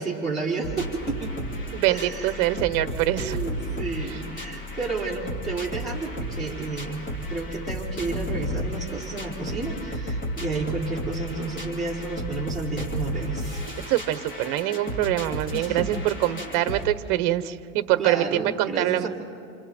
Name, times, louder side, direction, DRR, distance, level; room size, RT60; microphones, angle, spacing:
voice 1, 0.0-1.3 1.9-2.4 3.2-7.0 7.3-13.6 15.5-16.0 18.0-19.1, right 3 dB, ahead, -7 dB, 4.5 m, -31 dB
sound 1, 0.6-16.8, equal, 20° left, 2.8 m, -33 dB
voice 2, 1.7-3.4 4.1-4.2 13.9-19.1, right 14 dB, 45° right, 12 dB, 1.2 m, -24 dB
28.5 x 27.5 x 4.5 m, 2.5 s
supercardioid pair, 150°, 42 cm